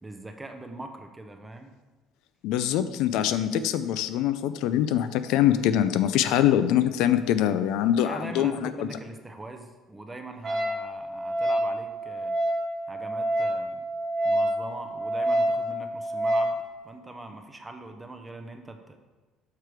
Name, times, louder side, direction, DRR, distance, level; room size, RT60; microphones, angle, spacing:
voice 1, 0.0-1.7 8.0-12.3 12.9-13.8 14.2-16.6 16.8-19.0, right 2 dB, 10° right, 5 dB, 0.5 m, -41 dB
voice 2, 2.4-8.9, left 11 dB, 70° left, 11 dB, 0.4 m, -24 dB
Wind instrument woodwind instrument, 10.4-16.6, right 1 dB, 30° right, 1.4 m, -27 dB
6.6 x 4.5 x 4.8 m, 1.2 s
cardioid pair, 175°, 0 cm